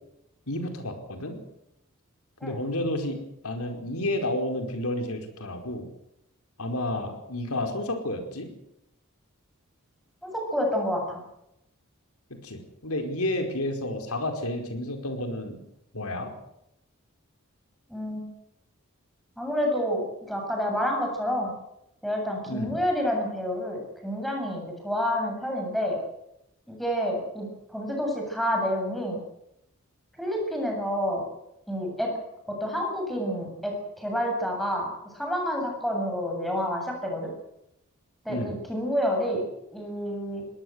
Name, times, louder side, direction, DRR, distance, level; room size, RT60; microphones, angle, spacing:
voice 1, 0.5-1.4 2.4-5.9 6.6-8.5 12.3-15.6 15.9-16.3 22.5-22.8 38.3-38.6, left 1 dB, 80° left, 5 dB, 4.8 m, -31 dB
voice 2, 10.2-11.2 17.9-18.3 19.4-21.5 22.0-26.0 26.7-29.2 30.2-31.2 31.7-32.1 32.5-37.3 38.2-39.4 39.7-40.4, equal, ahead, 1 dB, 7.9 m, -29 dB
21.0 x 19.0 x 8.0 m, 0.82 s
head